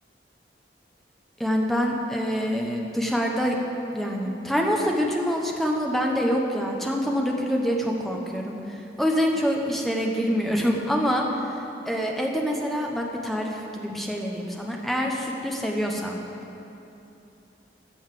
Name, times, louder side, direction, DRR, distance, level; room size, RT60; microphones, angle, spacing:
voice 1, 1.4-3.6 3.9-11.3 11.8-16.2, equal, ahead, 0 dB, 1.0 m, -26 dB
14.0 x 5.5 x 7.6 m, 2.9 s
head